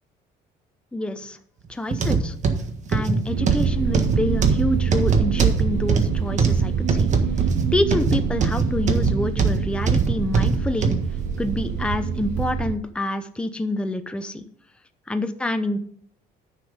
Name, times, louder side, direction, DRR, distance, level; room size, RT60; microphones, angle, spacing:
voice 1, 0.9-1.4 1.7-2.4 2.9-7.1 7.7-10.9 11.4-14.4 15.1-15.8, left 1 dB, 5° left, 8 dB, 0.7 m, -27 dB
sound 1, 1.9-11.0 11.6-11.7 12.4-12.5, right 5 dB, 45° right, 1.5 m, -21 dB
sound 2, 3.3-12.8, right 7 dB, 65° right, 1.0 m, -26 dB
10.5 x 6.1 x 5.2 m, 0.62 s
cardioid pair, 110°, 17 cm